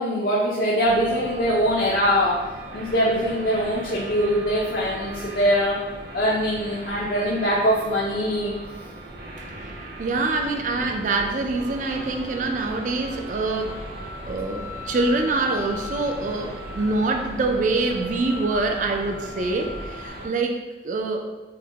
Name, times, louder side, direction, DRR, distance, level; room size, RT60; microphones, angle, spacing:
voice 1, 0.0-2.4 2.7-5.8 6.1-8.5, equal, 55° left, -6 dB, 0.5 m, -22 dB
sound 1, 0.8-20.3, equal, 60° right, 0.9 m, -37 dB
voice 2, 10.0-13.8 14.3-21.2, right 3 dB, 45° right, 4 dB, 0.4 m, -25 dB
4.9 x 2.1 x 2.8 m, 1.2 s
head